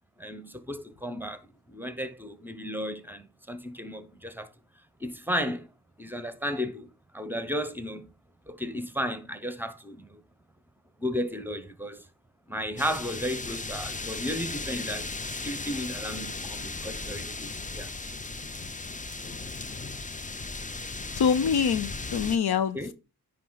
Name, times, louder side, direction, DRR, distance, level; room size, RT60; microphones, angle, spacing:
voice 1, 0.2-1.4 1.7-4.5 5.0-5.7 6.0-6.9 7.1-8.1 8.5-10.1 11.0-12.0 12.5-15.1 15.4-17.9 22.7-22.9, equal, 5° right, 0.9 m, -34 dB
sound 1, 12.8-22.4, left 3 dB, 20° left, 0.6 m, -36 dB
voice 2, 21.2-22.9, left 7 dB, 70° left, 0.7 m, -25 dB
9.7 x 3.5 x 4.0 m
cardioid pair, 50°, 40 cm